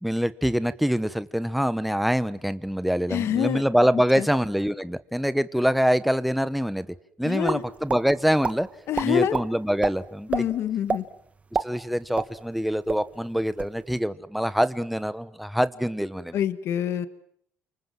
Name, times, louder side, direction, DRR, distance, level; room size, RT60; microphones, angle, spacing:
voice 1, 0.0-6.9 7.2-8.7 9.0-10.5 11.6-16.4, equal, ahead, 13 dB, 1.1 m, -25 dB
voice 2, 3.1-3.6 4.2-4.3 7.2-7.6 8.9-9.4 10.3-11.0 16.3-17.1, left 10 dB, 70° left, 12 dB, 1.5 m, -26 dB
sound 1, 7.4-8.0 8.4-8.6 8.9-9.5 9.8-9.9 10.3-10.4 10.9-11.0 11.4-12.6 12.9-13.0 13.4-13.7, right 4 dB, 30° right, 1.4 m, -27 dB
30.0 x 25.5 x 7.7 m, 0.67 s
cardioid pair, 110°, 5 cm